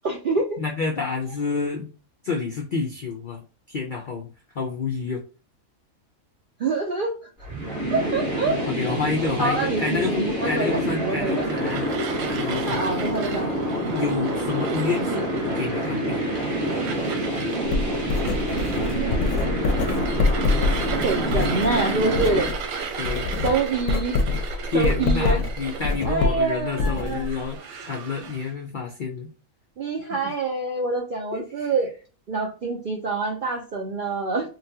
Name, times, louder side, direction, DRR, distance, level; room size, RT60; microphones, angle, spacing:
voice 1, 0.0-0.6 6.6-7.1 7.9-8.6 9.4-11.5 12.7-13.5 18.8-19.6 19.9-20.1 20.9-22.5 23.4-24.4 24.7-25.4 26.0-27.3 29.8-31.9 32.3-34.5, right 3 dB, 65° right, 1 dB, 0.5 m, -26 dB
voice 2, 0.6-1.9 2.2-3.4 3.7-4.3 4.5-5.2 8.7-11.9 12.3-12.8 13.9-16.2 21.3-21.5 23.0-23.3 24.7-29.3 31.3-31.7, left 4 dB, 70° left, 1 dB, 0.4 m, -29 dB
sound 1, 7.4-22.4, equal, 40° right, 1.8 m, -27 dB
sound 2, 11.2-28.5, right 5 dB, 85° right, 1.2 m, -34 dB
Writing, 17.7-22.6 22.9-27.5, left 3 dB, 85° left, 1.1 m, -25 dB
3.9 x 2.2 x 2.7 m, 0.35 s
omnidirectional pair, 1.5 m